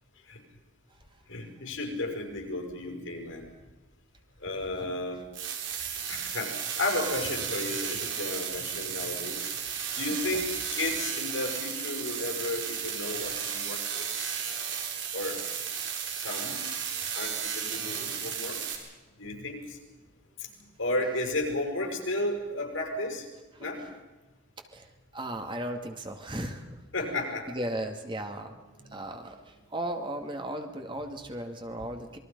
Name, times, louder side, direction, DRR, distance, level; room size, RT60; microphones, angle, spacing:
voice 1, 1.3-3.5 4.4-5.2 6.1-9.4 9.9-14.3 15.1-15.4 16.1-16.6 17.1-18.6 19.2-19.8 20.4-20.5 20.8-23.3 23.6-23.8 26.9-27.5 28.9-29.0, left 2 dB, 85° left, 1 dB, 6.4 m, -33 dB
sound 1, 5.3-18.7, right 8 dB, 70° right, 4.5 m, -34 dB
voice 2, 24.6-26.8 27.5-28.5 28.9-32.2, right 1 dB, 25° right, 5 dB, 2.1 m, -36 dB
27.0 x 22.0 x 5.4 m, 1.2 s
head